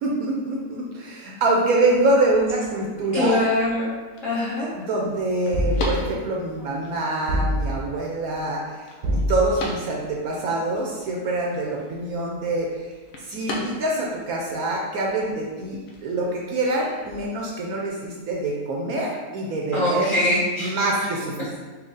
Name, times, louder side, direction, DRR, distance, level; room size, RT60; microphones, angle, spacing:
voice 1, 0.0-3.4 4.7-8.9 9.3-12.9 13.2-20.1 20.6-21.6, right 2 dB, 70° right, -2 dB, 1.0 m, -25 dB
sound 1, 1.8-17.2, left 2 dB, 65° left, 1.0 m, -40 dB
voice 2, 3.1-3.9 4.2-4.7 19.7-21.1, left 1 dB, 35° left, -10 dB, 1.2 m, -23 dB
sound 2, 5.5-6.3 7.3-8.0 9.0-9.8, right 1 dB, 90° right, 1.3 m, -25 dB
4.3 x 2.3 x 3.9 m, 1.4 s
omnidirectional pair, 1.7 m